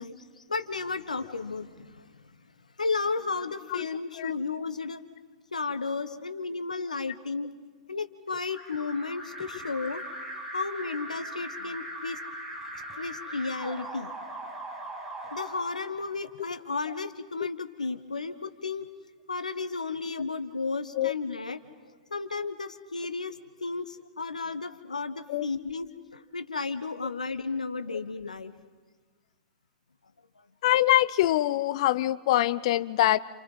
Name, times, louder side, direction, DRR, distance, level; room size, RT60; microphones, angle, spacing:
voice 1, 0.0-2.3 2.8-5.0 5.5-7.5 7.9-10.0 10.5-12.2 12.9-14.1 15.3-18.9 19.3-28.5, left 4 dB, 85° left, 10 dB, 1.3 m, -33 dB
Alarm, 8.5-16.4, right 1 dB, 10° right, 6.4 m, -40 dB
voice 2, 30.6-33.2, left 14 dB, 55° left, 17 dB, 0.7 m, -24 dB
28.5 x 28.0 x 5.6 m, 1.4 s
figure-of-eight pair, 100°, 4 cm